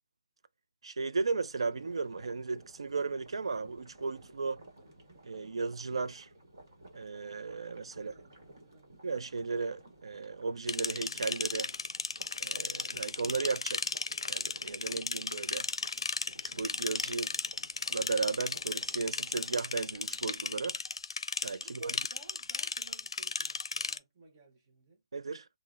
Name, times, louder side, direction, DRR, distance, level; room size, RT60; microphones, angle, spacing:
voice 1, 0.8-4.6 5.2-6.3 6.9-8.1 9.0-11.7 12.4-13.9 14.3-15.7 16.6-17.3 17.9-20.8 21.4-22.0 25.1-25.5, right 4 dB, 80° right, 0.4 m, -35 dB
sound 1, 1.6-20.3, right 1 dB, 40° right, 1.1 m, -56 dB
voice 2, 7.9-8.9 21.6-25.0, right 2 dB, 15° right, 0.6 m, -59 dB
sound 2, 10.7-24.0, left 4 dB, 75° left, 0.5 m, -35 dB
5.5 x 2.0 x 2.4 m
hypercardioid pair, 180°, 3 cm